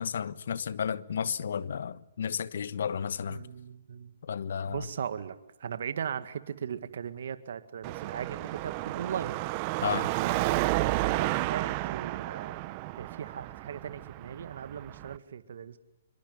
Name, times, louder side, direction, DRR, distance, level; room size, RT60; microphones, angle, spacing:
voice 1, 0.0-3.4 4.2-4.8 9.8-10.1, left 7 dB, 70° left, 1.3 m, -32 dB
voice 2, 3.3-4.2 4.7-9.4 10.2-12.7 12.9-15.8, right 8 dB, 70° right, 1.9 m, -38 dB
Car passing by / Traffic noise roadway noise / Engine, 7.8-15.2, right 19 dB, 35° right, 1.0 m, -32 dB
26.0 x 23.5 x 9.4 m
hypercardioid pair, 145°, 0 cm